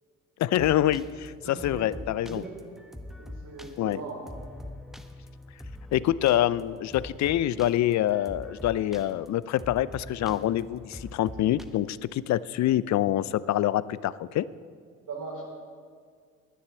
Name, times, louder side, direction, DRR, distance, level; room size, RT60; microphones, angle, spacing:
voice 1, 0.4-2.4 3.8-4.0 5.9-14.5, left 13 dB, 50° left, 19 dB, 0.5 m, -26 dB
sound 1, 0.6-11.7, left 1 dB, ahead, 1.2 m, -43 dB
voice 2, 1.4-1.8 2.3-2.4 3.2-4.2 15.1-15.4, right 4 dB, 60° right, -1 dB, 4.1 m, -39 dB
10.5 x 9.9 x 8.0 m, 2.1 s
hypercardioid pair, 55°, 35 cm